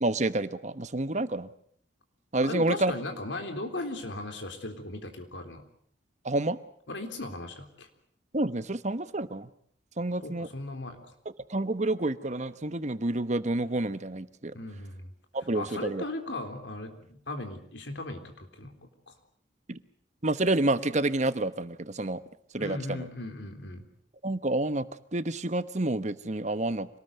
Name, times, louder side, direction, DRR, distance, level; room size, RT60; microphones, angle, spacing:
voice 1, 0.0-1.5 2.3-2.9 6.2-6.6 8.3-9.5 10.0-10.5 11.2-14.5 15.3-16.0 19.7-19.8 20.2-22.2 22.5-23.1 24.2-24.8 25.1-26.9, right 2 dB, 40° right, 13 dB, 1.1 m, -29 dB
voice 2, 2.4-5.6 6.9-7.9 10.2-11.1 14.5-15.1 15.5-18.7 19.1-19.2 22.6-23.8, left 2 dB, 85° left, 6 dB, 3.7 m, -37 dB
26.0 x 19.5 x 8.1 m, 0.63 s
head